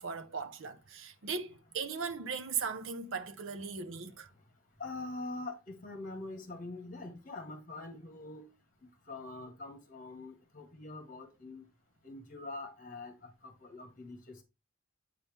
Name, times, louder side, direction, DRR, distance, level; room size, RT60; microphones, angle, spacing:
voice 1, 0.0-4.3, right 5 dB, 60° right, 0.7 m, -38 dB
voice 2, 4.8-8.5 9.1-11.6 12.0-13.1 13.4-14.4, left 2 dB, 40° left, 1.5 m, -44 dB
8.5 x 4.2 x 3.6 m
head